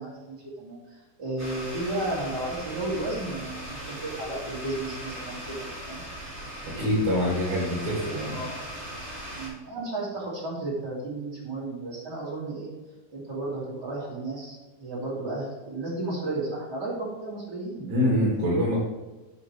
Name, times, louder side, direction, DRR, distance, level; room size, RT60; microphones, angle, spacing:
voice 1, 0.0-6.0 8.3-8.6 9.4-12.7 13.1-17.9, right 2 dB, 30° right, -6 dB, 2.6 m, -33 dB
sound 1, 1.4-9.5, equal, 5° right, 2.2 m, -39 dB
voice 2, 6.7-8.4 17.9-18.8, equal, 60° right, -7 dB, 3.8 m, -25 dB
9.7 x 7.1 x 3.4 m, 1.2 s
omnidirectional pair, 4.0 m